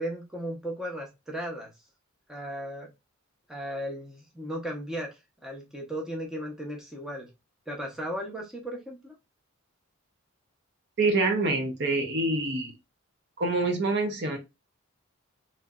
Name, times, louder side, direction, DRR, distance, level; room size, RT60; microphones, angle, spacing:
voice 1, 0.0-1.7 2.3-2.9 3.5-7.3 7.7-9.1, equal, 5° right, 0.6 m, -36 dB
voice 2, 11.0-12.7 13.4-14.4, right 2 dB, 50° right, 0.6 m, -26 dB
3.1 x 2.8 x 2.3 m
head